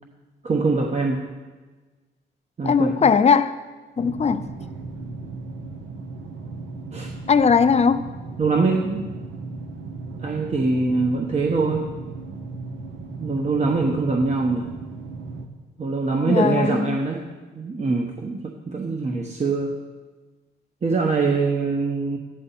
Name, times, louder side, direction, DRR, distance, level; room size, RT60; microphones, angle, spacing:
voice 1, 0.4-1.2 2.6-2.9 6.9-7.1 8.4-9.1 10.2-11.9 13.2-14.7 15.8-17.2 17.5-19.7 20.8-22.2, right 3 dB, 35° right, 1.1 m, -23 dB
voice 2, 2.6-3.6 4.0-4.5 7.3-8.0 16.3-17.0, left 6 dB, 35° left, 0.7 m, -19 dB
sound 1, 4.0-15.5, right 3 dB, 75° right, 1.4 m, -36 dB
13.5 x 9.6 x 4.2 m
cardioid pair, 90°, 20 cm